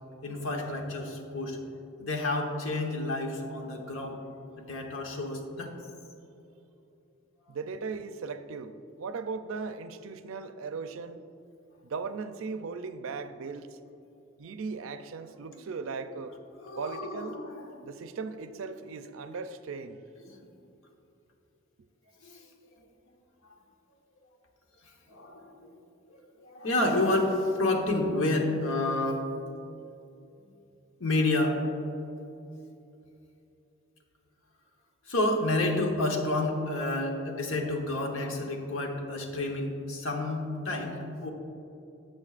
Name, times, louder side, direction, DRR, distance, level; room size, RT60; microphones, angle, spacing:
voice 1, 0.2-1.6 2.0-4.2 4.6-5.7 16.6-17.8 20.2-20.4 22.2-22.4 25.1-25.8 26.1-29.2 31.0-31.8 35.1-41.3, left 2 dB, 80° left, 2 dB, 1.1 m, -30 dB
voice 2, 7.5-11.2 11.8-13.8 14.4-16.4 16.8-17.4 17.8-20.0, right 4 dB, 85° right, 10 dB, 0.5 m, -38 dB
12.5 x 7.8 x 2.5 m, 2.7 s
head